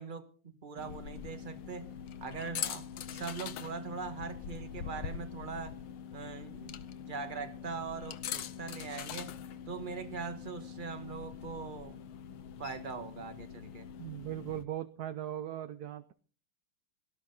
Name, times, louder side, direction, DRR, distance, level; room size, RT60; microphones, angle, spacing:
voice 1, 0.0-1.9 2.2-5.7 6.1-6.8 7.1-9.3 9.7-12.0 12.6-13.9, right 5 dB, 25° right, 9 dB, 1.4 m, -41 dB
sound 1, 0.8-14.7, left 9 dB, 75° left, 1.7 m, -43 dB
voice 2, 14.0-16.1, right 12 dB, 65° right, 12 dB, 1.0 m, -39 dB
18.0 x 12.5 x 3.9 m, 0.40 s
omnidirectional pair, 2.4 m